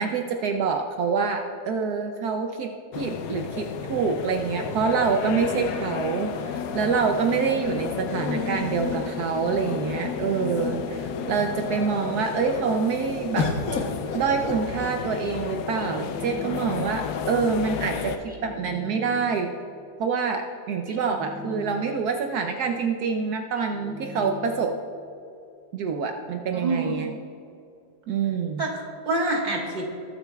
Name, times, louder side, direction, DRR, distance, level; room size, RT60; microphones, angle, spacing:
voice 1, 0.0-13.5 14.1-19.5 20.0-24.7 25.7-27.1 28.1-28.6, right 5 dB, 75° right, 4 dB, 1.2 m, -26 dB
sound 1, 2.9-18.2, left 7 dB, 75° left, 1.2 m, -32 dB
sound 2, 8.1-9.7 10.4-10.5 10.8-11.4 13.4-15.2 16.2-16.9, left 3 dB, 60° left, 1.5 m, -33 dB
sound 3, 15.8-17.1 18.3-19.6 20.9-22.2 23.6-24.9, left 5 dB, 5° right, 1.1 m, -40 dB
voice 2, 26.5-26.9 28.6-29.9, right 2 dB, 30° right, -1 dB, 1.5 m, -26 dB
20.5 x 8.0 x 2.3 m, 2.7 s
omnidirectional pair, 1.8 m